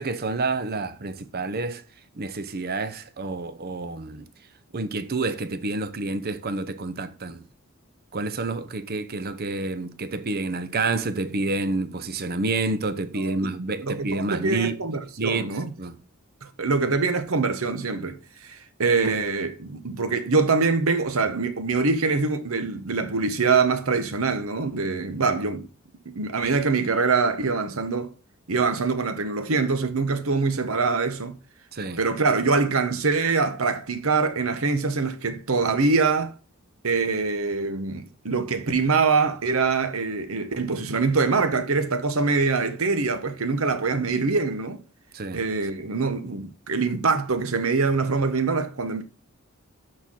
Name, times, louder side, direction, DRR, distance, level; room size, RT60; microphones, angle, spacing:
voice 1, 0.0-1.8 2.2-4.3 4.7-7.4 8.1-14.8 15.2-15.5 15.8-16.0 31.7-32.0 45.1-45.4, right 3 dB, 45° right, 0.8 m, -28 dB
voice 2, 13.8-15.7 16.4-25.7 26.1-28.1 28.5-31.4 32.0-36.3 36.8-44.8 45.3-49.0, right 4 dB, 70° right, 1.0 m, -24 dB
12.5 x 4.3 x 3.7 m
head